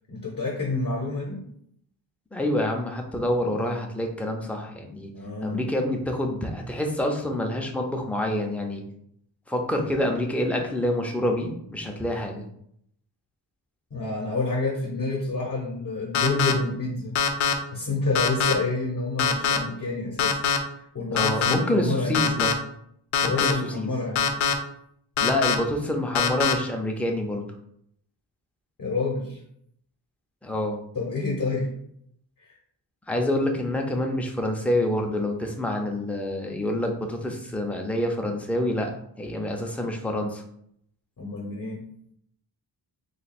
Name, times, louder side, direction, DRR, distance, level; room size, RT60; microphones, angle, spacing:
voice 1, 0.1-1.4 5.1-5.6 13.9-17.1 17.7-20.4 20.8-22.3 23.2-24.3 28.8-29.4 30.9-31.7 32.4-32.5 41.2-41.8, left 3 dB, 45° left, -3 dB, 0.8 m, -28 dB
voice 2, 2.3-5.1 5.4-8.8 9.5-12.4 21.1-22.6 23.2-23.9 25.2-27.4 30.4-30.8 33.1-38.9 39.2-40.4, left 1 dB, 5° left, 2 dB, 0.4 m, -27 dB
sound 1, 16.1-16.5 17.2-17.5 18.2-18.5 19.2-19.6 20.2-20.6 21.2-21.5 22.1-22.5 23.1-23.5 24.2-24.5 25.2-25.6 26.2-26.5, left 7 dB, 85° left, 0.6 m, -22 dB
3.2 x 2.3 x 4.1 m, 0.70 s
wide cardioid pair, 100°, 47 cm